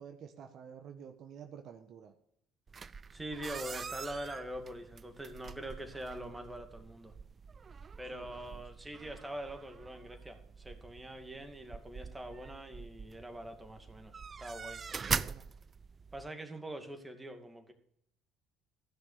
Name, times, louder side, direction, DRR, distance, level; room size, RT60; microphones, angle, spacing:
voice 1, 0.0-2.1 8.1-8.6 15.1-15.5, right 8 dB, 55° right, 6 dB, 1.2 m, -50 dB
sound 1, 2.7-16.3, right 5 dB, 35° right, 0.4 m, -43 dB
voice 2, 3.1-7.1 8.0-14.1 14.4-14.8 16.1-17.7, right 1 dB, 15° right, 5 dB, 2.4 m, -44 dB
14.5 x 6.2 x 6.8 m, 0.73 s
hypercardioid pair, 65°, 0 cm